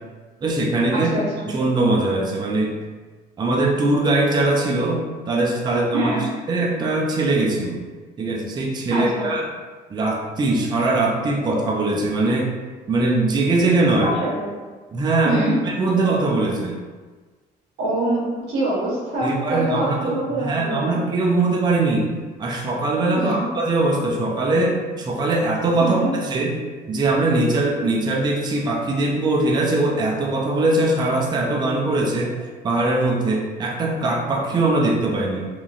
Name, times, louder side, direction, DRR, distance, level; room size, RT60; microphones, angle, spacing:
voice 1, 0.4-1.1 1.5-2.8 3.4-6.1 6.5-7.8 8.2-9.4 9.9-12.5 12.9-14.1 14.9-16.8 19.2-22.1 22.4-26.6 26.9-32.3 32.6-35.5, right 2 dB, 25° right, -1 dB, 0.4 m, -21 dB
voice 2, 0.9-1.5 5.9-6.3 8.9-9.3 14.0-14.5 15.2-15.5 17.8-21.0 23.2-23.5 25.8-26.1, right 1 dB, 85° right, -6 dB, 0.8 m, -25 dB
2.9 x 2.4 x 2.4 m, 1.4 s
cardioid pair, 110°, 17 cm